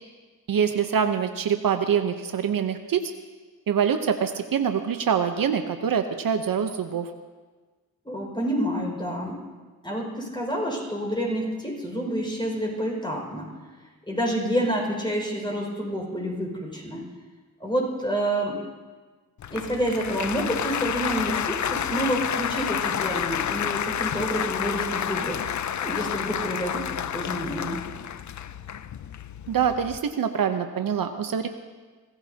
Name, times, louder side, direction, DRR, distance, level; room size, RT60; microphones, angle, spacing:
voice 1, 0.5-3.1 3.7-7.1 29.5-31.5, right 7 dB, 65° right, 7 dB, 0.9 m, -25 dB
voice 2, 8.0-9.4 9.8-13.5 14.1-17.0 17.6-18.6 19.5-27.8, equal, 10° left, -1 dB, 5.6 m, -28 dB
Applause, 19.4-30.0, left 9 dB, 50° left, 0.6 m, -30 dB
24.0 x 15.0 x 2.8 m, 1.4 s
cardioid pair, 70°, 37 cm